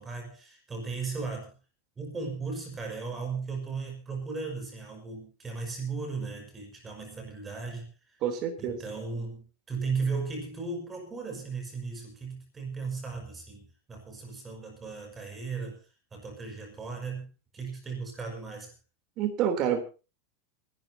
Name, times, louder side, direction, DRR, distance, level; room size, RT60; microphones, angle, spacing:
voice 1, 0.0-1.6 2.0-8.2 8.6-15.8 16.1-18.7, right 4 dB, 15° right, 2 dB, 5.5 m, -36 dB
voice 2, 8.2-8.8 19.2-19.8, right 9 dB, 35° right, 6 dB, 3.4 m, -28 dB
28.5 x 12.5 x 2.9 m, 0.33 s
supercardioid pair, 165°, 0 cm